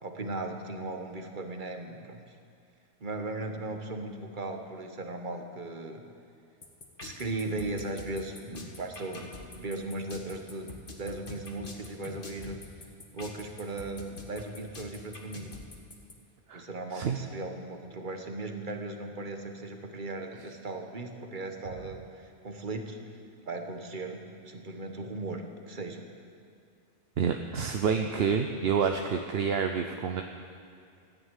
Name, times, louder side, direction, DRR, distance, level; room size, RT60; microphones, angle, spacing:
voice 1, 0.0-2.2 3.0-6.0 7.0-10.7 11.0-12.6 13.1-15.5 16.5-23.0 23.4-26.0, right 2 dB, 45° right, 5 dB, 1.5 m, -37 dB
sound 1, 6.6-16.1, left 2 dB, 50° left, 1.7 m, -45 dB
voice 2, 27.2-30.2, right 6 dB, 65° right, 5 dB, 1.0 m, -28 dB
14.5 x 10.0 x 9.1 m, 2.5 s
omnidirectional pair, 1.1 m